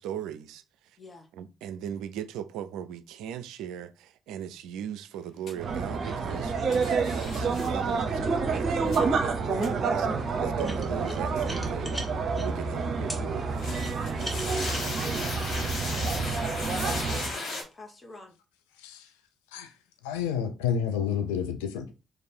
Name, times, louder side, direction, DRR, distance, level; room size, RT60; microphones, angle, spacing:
voice 1, 0.0-1.0 1.3-10.1 10.4-12.0 12.3-13.5, right 9 dB, 70° right, 0.3 m, -39 dB
sound 1, 5.5-5.6 6.7-7.7 8.9-9.0 9.6-9.7 13.5-17.6, left 2 dB, 60° left, 1.3 m, -36 dB
sound 2, 5.6-17.3, right 4 dB, 55° right, 0.7 m, -28 dB
sound 3, 10.6-12.5 13.1-13.2 13.8-16.2, right 1 dB, 5° left, 1.3 m, -39 dB
voice 2, 15.2-16.0 17.1-18.3, left 2 dB, 30° left, 1.1 m, -49 dB
voice 3, 18.8-19.1 19.5-19.7 20.0-21.9, left 8 dB, 80° left, 0.4 m, -30 dB
3.3 x 2.5 x 4.2 m
figure-of-eight pair, 45°, 0 cm